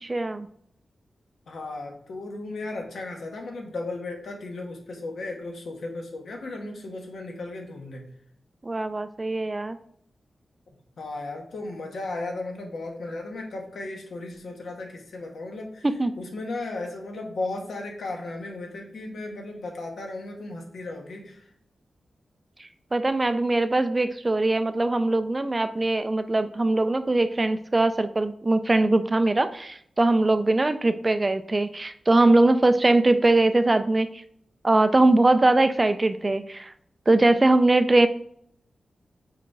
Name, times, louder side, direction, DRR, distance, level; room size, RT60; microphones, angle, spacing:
voice 1, 0.0-0.5 8.6-9.8 15.8-16.1 22.6-34.2 34.6-36.7 37.1-38.1, right 2 dB, 20° right, 11 dB, 0.3 m, -21 dB
voice 2, 1.5-8.0 11.0-15.9 16.2-21.4, left 2 dB, 85° left, 2 dB, 1.4 m, -35 dB
6.1 x 4.1 x 4.6 m, 0.69 s
wide cardioid pair, 170°, 0 cm